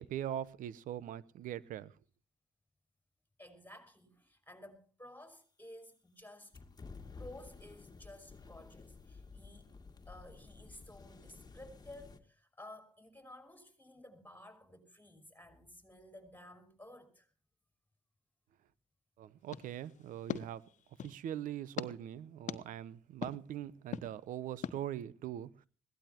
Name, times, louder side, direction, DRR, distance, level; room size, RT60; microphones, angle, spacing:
voice 1, 0.0-1.9 19.2-20.6 21.0-25.5, right 11 dB, 70° right, 0.9 m, -41 dB
voice 2, 3.4-6.5 7.2-9.7 10.1-17.3, left 1 dB, 15° left, 5.7 m, -54 dB
sound 1, 6.5-12.2, left 4 dB, 30° left, 2.3 m, -53 dB
sound 2, 19.5-21.2 21.8-21.9 22.5-22.6 23.2-23.3 23.9-24.1 24.6-24.8, left 9 dB, 60° left, 1.2 m, -41 dB
21.5 x 17.5 x 3.0 m
hypercardioid pair, 55°, 14 cm